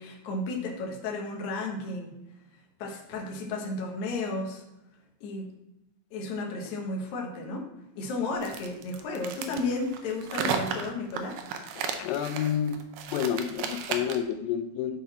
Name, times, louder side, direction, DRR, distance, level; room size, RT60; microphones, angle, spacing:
voice 1, 0.0-2.1 2.8-4.6 5.2-5.5 6.1-7.7 8.0-11.4, left 3 dB, 65° left, 0 dB, 2.0 m, -33 dB
sound 1, 8.4-14.3, right 6 dB, 80° right, 2.0 m, -34 dB
voice 2, 11.8-12.8 13.1-15.0, left 9 dB, 90° left, 9 dB, 2.7 m, -29 dB
11.5 x 3.9 x 4.1 m, 0.91 s
omnidirectional pair, 4.6 m